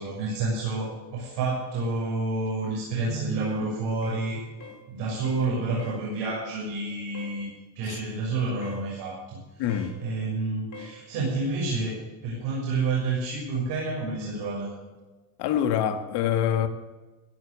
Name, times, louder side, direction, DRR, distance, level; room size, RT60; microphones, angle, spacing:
voice 1, 0.0-4.4 4.9-7.5 7.7-9.4 9.7-14.7, right 3 dB, 80° right, 6.5 m, -29 dB
sound 1, 3.4-3.7 4.0-4.3 4.6-4.8 5.2-5.5 5.8-6.0 7.1-7.4 8.6-8.9 9.7-9.9 10.7-11.0, left 4 dB, 45° left, 2.9 m, -44 dB
voice 2, 9.6-10.0 15.4-16.7, left 9 dB, 70° left, 1.9 m, -25 dB
16.5 x 8.7 x 8.3 m
supercardioid pair, 95°, 41 cm